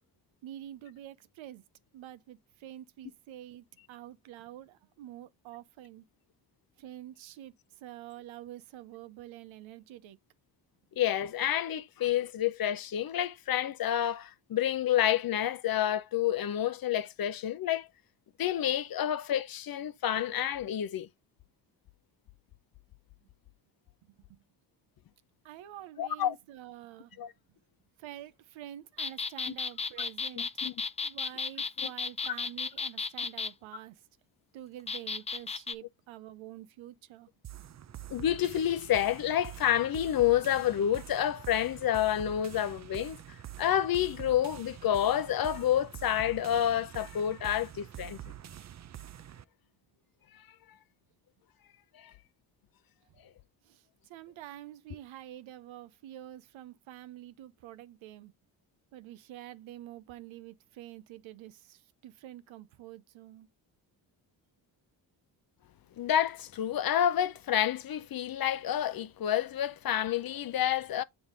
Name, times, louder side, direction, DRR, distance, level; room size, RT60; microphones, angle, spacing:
voice 1, 0.4-1.6 1.9-6.0 6.8-10.2 24.0-24.4 25.4-27.2 28.0-30.5 31.0-34.0 34.5-37.3 53.6-58.3 58.9-63.5, right 13 dB, 75° right, 0.8 m, -47 dB
voice 2, 11.0-17.9 18.4-21.1 26.0-26.3 27.2-27.3 30.6-30.7 31.8-31.9 38.1-43.2 43.6-48.2 52.0-52.1 66.0-71.0, left 11 dB, 50° left, 0.6 m, -29 dB
sound 1, 29.0-33.5 34.9-35.7, left 5 dB, 15° left, 0.4 m, -34 dB
sound 2, 37.4-49.4, right 12 dB, 35° right, 0.5 m, -46 dB
7.2 x 3.5 x 3.8 m
supercardioid pair, 50°, 47 cm